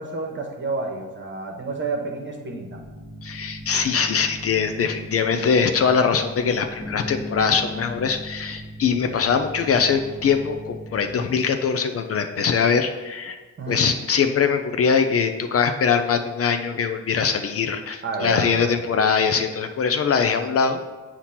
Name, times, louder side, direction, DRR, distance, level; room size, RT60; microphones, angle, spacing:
voice 1, 0.0-2.8 13.6-13.8 18.0-18.7, right 3 dB, 35° right, 2 dB, 1.2 m, -30 dB
sound 1, 2.7-11.2, equal, 15° left, 1.2 m, -38 dB
voice 2, 3.2-13.4 13.7-20.8, left 6 dB, 45° left, 7 dB, 0.5 m, -22 dB
8.1 x 2.9 x 5.7 m, 1.3 s
cardioid pair, 95°, 33 cm